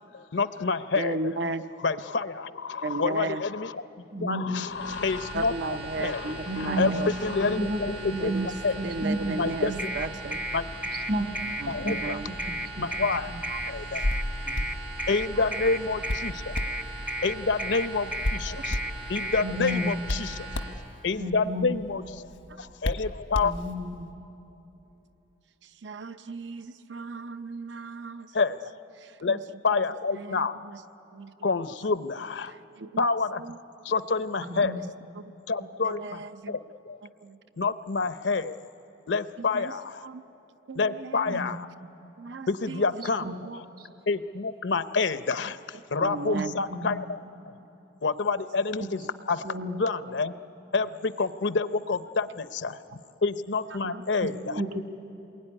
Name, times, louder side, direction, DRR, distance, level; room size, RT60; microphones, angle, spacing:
voice 1, 0.1-1.2 1.8-8.8 9.4-9.9 10.5-10.6 11.7-12.2 12.8-13.3 13.7-14.0 15.1-16.6 17.2-18.8 19.1-20.4 21.0-22.3 22.6-23.5 28.3-28.7 29.2-29.4 29.6-30.6 31.4-32.5 33.0-33.4 33.8-34.8 35.5-36.6 36.9-37.0 37.6-38.5 39.1-40.1 40.8-41.7 42.5-43.3 43.5-43.6 44.1-47.5 48.0-49.0 49.3-50.3 50.7-52.8 53.2-54.6, left 4 dB, 70° left, 12 dB, 0.7 m, -28 dB
voice 2, 0.9-1.6 2.8-3.4 5.3-7.1 8.2-8.5 8.8-10.4 11.6-12.3 13.5-13.6 14.5-14.7 15.4-15.5 18.6-18.7 25.8-28.3 29.0-29.6 30.1-30.8 31.1-31.3 32.4-33.1 33.4-33.6 34.5-34.6 35.1-35.2 35.6-36.6 37.2-37.4 39.4-39.7 40.0-40.2 40.7-41.4 42.2-43.6 46.0-46.6 53.9-54.0 54.4-54.6, right 3 dB, 65° right, 11 dB, 0.7 m, -35 dB
voice 3, 4.1-4.6 6.5-7.0 7.3-8.5 8.8-9.8 11.1-11.3 11.8-12.0 12.5-12.9 13.3-13.4 19.4-20.0 21.2-21.7 23.4-24.1 34.4-34.8 41.3-41.6 43.2-43.4 43.8-43.9 46.3-47.1 49.4-49.8 53.8-53.9 54.5-54.8, right 1 dB, 50° right, 5 dB, 1.7 m, -32 dB
sound 1, 4.6-20.7, right 1 dB, 85° right, 7.6 m, -40 dB
sound 2, 9.8-20.0, right 1 dB, 10° right, 0.6 m, -33 dB
Hands, 13.8-24.0, left 1 dB, 85° left, 1.2 m, -35 dB
27.0 x 21.5 x 9.9 m, 3.0 s
head